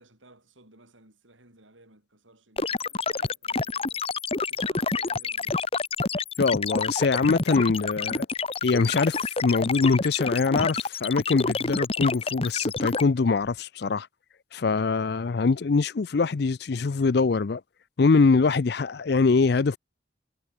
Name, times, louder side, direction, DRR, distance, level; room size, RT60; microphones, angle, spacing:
voice 1, 0.0-4.0 4.4-5.6, right 2 dB, 85° right, 7.9 m, -56 dB
sound 1, 2.6-13.0, left 3 dB, 30° left, 1.2 m, -28 dB
voice 2, 6.4-8.3 8.6-14.1 14.5-17.6 18.0-19.8, left 4 dB, 55° left, 0.5 m, -23 dB
head